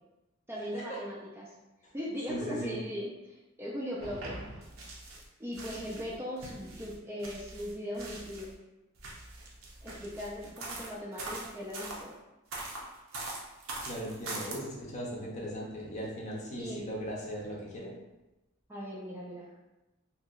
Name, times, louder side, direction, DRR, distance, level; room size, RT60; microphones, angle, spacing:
voice 1, 0.5-1.5 1.9-4.5 5.4-8.5 9.8-12.1 16.6-16.9 18.7-19.5, equal, 10° right, -5 dB, 0.4 m, -39 dB
voice 2, 2.3-2.7 13.8-17.9, equal, 35° left, -3 dB, 0.6 m, -38 dB
sound 1, 4.0-5.3 5.5-8.5 9.0-12.0 12.5-14.6, right 2 dB, 80° right, 0.6 m, -42 dB
2.8 x 2.8 x 2.4 m, 1.0 s
head